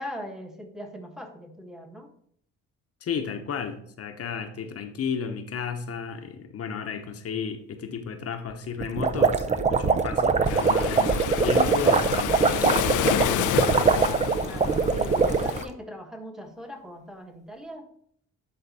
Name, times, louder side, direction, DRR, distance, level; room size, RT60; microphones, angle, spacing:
voice 1, 0.0-2.1 13.8-17.9, left 1 dB, ahead, 4 dB, 1.2 m, -40 dB
voice 2, 3.0-13.1, left 6 dB, 50° left, 6 dB, 0.9 m, -33 dB
sound 1, 8.8-15.6, right 5 dB, 25° right, 0.5 m, -22 dB
Waves surf, 10.5-15.6, left 11 dB, 80° left, 0.6 m, -29 dB
10.5 x 4.0 x 4.1 m, 0.65 s
cardioid pair, 90°, 30 cm